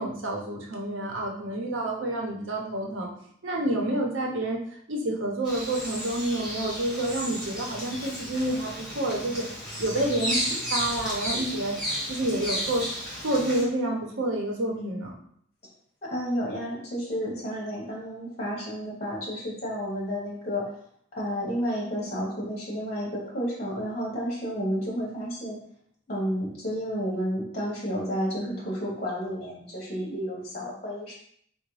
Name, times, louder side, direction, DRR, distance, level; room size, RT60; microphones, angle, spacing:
voice 1, 0.0-3.1 3.4-4.6 4.9-9.4 9.8-11.8 12.1-12.9 13.2-15.1, right 1 dB, 90° right, -1 dB, 0.7 m, -28 dB
Bird vocalization bird call bird song, 5.4-13.6, equal, 5° right, 1.1 m, -33 dB
voice 2, 16.0-20.6 21.1-25.6 26.1-31.1, equal, 35° left, -5 dB, 0.9 m, -31 dB
3.9 x 2.1 x 3.0 m, 0.66 s
head